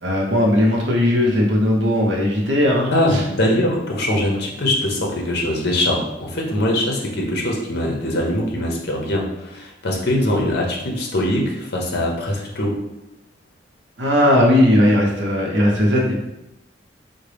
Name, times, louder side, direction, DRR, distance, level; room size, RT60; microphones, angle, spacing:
voice 1, 0.0-3.2 14.0-16.1, left 1 dB, 65° right, -2 dB, 0.8 m, -17 dB
voice 2, 2.9-12.8, left 1 dB, 60° left, -1 dB, 0.7 m, -22 dB
3.7 x 2.1 x 3.3 m, 0.91 s
head